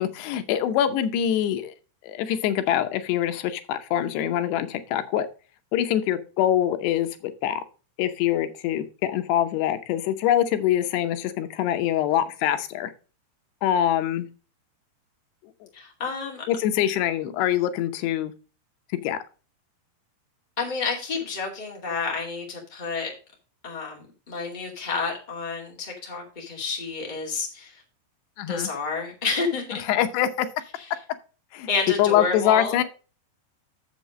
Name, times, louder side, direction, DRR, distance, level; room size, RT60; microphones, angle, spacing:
voice 1, 0.0-1.7 2.0-5.3 5.7-7.6 8.0-12.9 13.6-14.3 16.5-18.3 19.0-19.2 28.4-28.7 29.9-30.5 31.5-31.7 32.0-32.8, left 11 dB, 90° left, 9 dB, 3.0 m, -24 dB
voice 2, 15.7-16.4 20.6-23.1 23.6-27.8 28.5-29.8 30.8-30.9 31.7-32.8, left 4 dB, 15° left, -1 dB, 2.0 m, -30 dB
7.6 x 7.2 x 5.1 m, 0.34 s
omnidirectional pair, 4.7 m